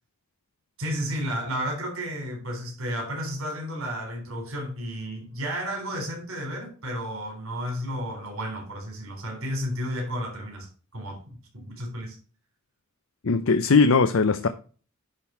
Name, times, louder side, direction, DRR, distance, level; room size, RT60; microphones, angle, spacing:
voice 1, 0.8-10.7 10.9-11.2 11.5-12.2, equal, 85° right, 3.8 m, -32 dB
voice 2, 13.2-14.5, left 4 dB, 70° left, 0.6 m, -19 dB
10.5 x 3.8 x 5.5 m
head